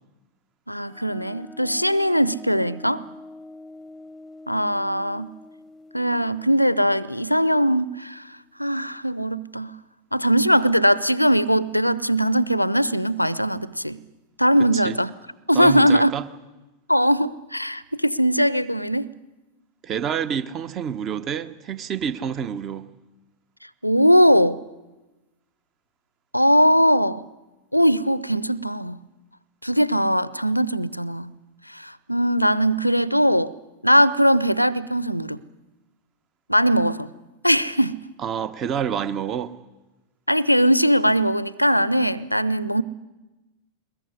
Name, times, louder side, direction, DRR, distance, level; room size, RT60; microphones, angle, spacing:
voice 1, 0.7-3.0 4.5-5.3 5.9-8.2 8.6-9.7 10.1-14.0 14.4-15.1 15.5-16.1 16.9-19.1 23.8-24.6 26.3-27.2 27.7-29.0 29.6-31.3 31.7-33.5 33.8-35.4 36.5-37.1 37.4-38.0 40.3-42.8, equal, 90° left, 0.7 m, -20 dB
sound 1, 0.9-8.3, left 2 dB, 10° left, 1.0 m, -45 dB
voice 2, 15.5-16.2 19.8-22.9 38.2-39.5, right 8 dB, 30° right, 1.3 m, -28 dB
21.5 x 21.0 x 9.8 m
figure-of-eight pair, 90°, 0 cm